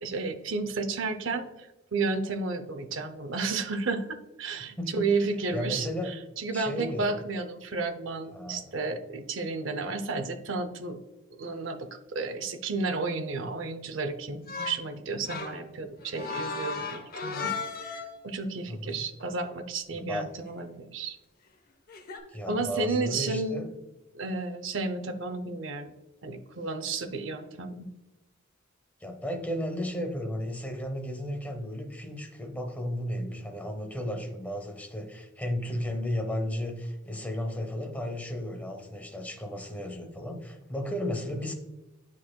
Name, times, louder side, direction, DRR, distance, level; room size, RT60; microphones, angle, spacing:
voice 1, 0.0-1.5 1.9-11.0 11.4-17.5 18.2-21.2 22.5-23.6 24.1-25.9 26.2-27.9, right 3 dB, 65° right, 8 dB, 0.6 m, -32 dB
voice 2, 4.8-5.1 5.5-6.1 6.5-7.2 8.3-8.8 18.7-19.0 19.9-20.3 22.3-23.7 29.0-41.5, equal, 10° left, 4 dB, 0.7 m, -34 dB
sound 1, 14.5-14.9 15.2-18.3 20.4-20.6 21.9-22.2, left 4 dB, 45° left, 0.8 m, -35 dB
9.7 x 4.4 x 2.2 m, 1.0 s
head